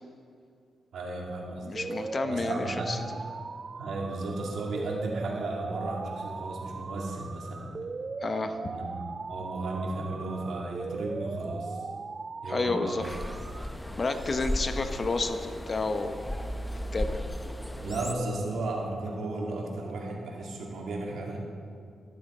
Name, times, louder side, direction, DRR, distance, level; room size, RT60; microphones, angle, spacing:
voice 1, 0.9-1.7 2.3-2.9 3.8-7.7 8.7-11.8 12.4-13.1 17.8-21.4, right 2 dB, 75° right, -1 dB, 2.2 m, -34 dB
voice 2, 1.6-3.0 8.2-8.6 12.5-13.1 13.9-16.1 16.9-17.2, left 3 dB, 45° left, 7 dB, 0.9 m, -30 dB
sound 1, 1.8-13.8, right 4 dB, 45° right, 0.3 m, -39 dB
sound 2, 13.0-18.1, left 1 dB, 10° left, 0.7 m, -35 dB
12.0 x 11.0 x 4.3 m, 2.3 s
supercardioid pair, 55°, 0 cm